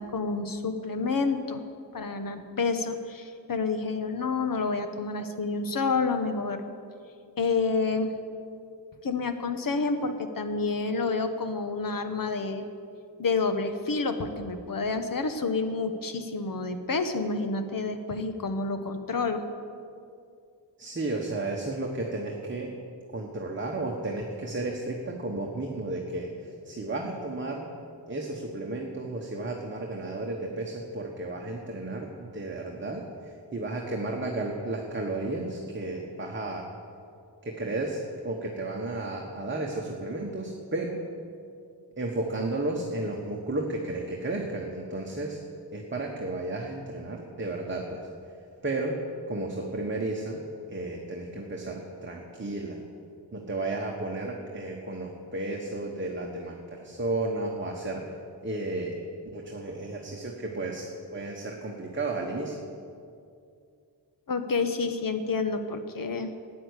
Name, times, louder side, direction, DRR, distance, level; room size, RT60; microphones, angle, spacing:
voice 1, 0.0-1.6 1.9-6.6 7.4-8.1 9.0-12.6 13.2-19.4 64.3-66.3, left 4 dB, 50° left, 8 dB, 1.1 m, -29 dB
voice 2, 20.8-22.7 23.1-27.7 28.1-36.7 37.4-41.0 42.0-45.4 45.7-48.1 48.6-49.0 49.3-50.4 50.7-52.8 53.3-58.1 58.4-59.0 59.3-62.5, right 2 dB, 25° right, 0 dB, 1.3 m, -33 dB
13.5 x 9.4 x 8.2 m, 2.4 s
wide cardioid pair, 125°, 43 cm